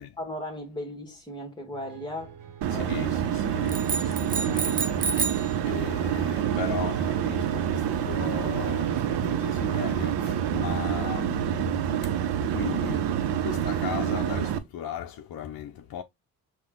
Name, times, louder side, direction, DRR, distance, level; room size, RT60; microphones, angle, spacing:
voice 1, 0.0-2.3 2.7-2.9, left 1 dB, 10° left, 1.4 m, -37 dB
sound 1, 1.7-10.8, right 6 dB, 45° right, 1.2 m, -42 dB
sound 2, 2.6-14.6, right 9 dB, 70° right, 0.8 m, -27 dB
voice 2, 2.7-16.0, left 9 dB, 55° left, 0.6 m, -38 dB
sound 3, 3.7-5.5, right 4 dB, 20° right, 0.5 m, -29 dB
5.8 x 2.4 x 3.7 m
supercardioid pair, 60°, 44 cm